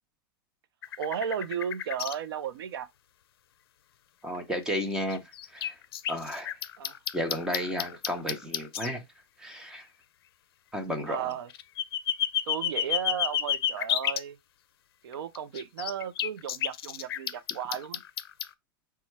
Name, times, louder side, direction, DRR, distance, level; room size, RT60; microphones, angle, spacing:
sound 1, 0.8-2.1 4.3-4.4 5.1-8.9 11.3-14.2 15.1-18.5, left 10 dB, 75° left, 0.4 m, -31 dB
voice 1, 1.0-2.9 6.8-7.0 11.1-11.5 12.5-14.4 15.0-18.0, right 8 dB, 75° right, 0.6 m, -34 dB
voice 2, 4.2-5.8 6.1-6.5 7.1-9.0 9.4-9.9 10.7-11.3, equal, 5° right, 0.7 m, -33 dB
4.3 x 2.3 x 4.4 m
supercardioid pair, 150°, 13 cm